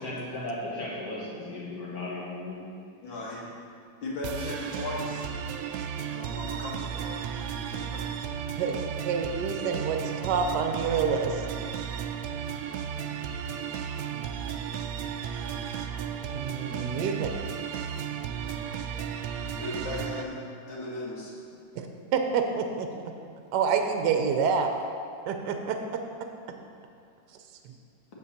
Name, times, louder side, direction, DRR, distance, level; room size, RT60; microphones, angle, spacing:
voice 1, 0.0-2.6, left 2 dB, 50° left, -6 dB, 2.3 m, -36 dB
voice 2, 3.0-3.5 4.0-5.3 6.1-7.2 7.7-8.0 16.4-16.5 19.6-20.4 20.7-21.3, left 2 dB, 85° left, -4 dB, 2.3 m, -36 dB
sound 1, 4.2-20.2, right 8 dB, 90° right, 0.7 m, -34 dB
voice 3, 9.0-11.6 16.3-17.3 21.8-21.9 22.1-22.9 23.5-24.7 25.3-25.8, right 6 dB, 70° right, 5 dB, 1.2 m, -27 dB
8.4 x 4.6 x 6.5 m, 2.3 s
omnidirectional pair, 2.0 m